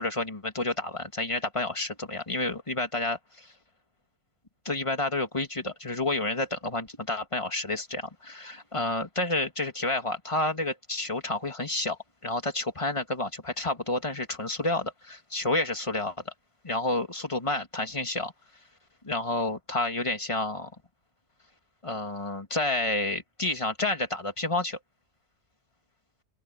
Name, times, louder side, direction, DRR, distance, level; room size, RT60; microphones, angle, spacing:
voice 1, 0.0-3.5 4.6-16.1 16.6-18.3 19.0-20.7 21.8-24.8, left 2 dB, 25° left, 2.5 m, -30 dB
open air
omnidirectional pair, 1.3 m